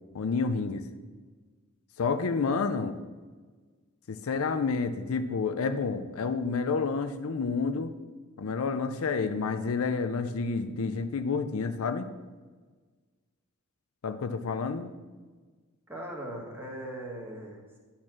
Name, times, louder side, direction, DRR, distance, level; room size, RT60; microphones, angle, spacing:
voice 1, 0.1-0.8 2.0-3.0 4.1-7.9 8.4-12.1 14.0-14.9, left 4 dB, 70° left, 9 dB, 0.5 m, -29 dB
voice 2, 15.9-17.8, right 1 dB, 10° right, -1 dB, 1.6 m, -39 dB
10.5 x 4.4 x 6.1 m, 1.4 s
head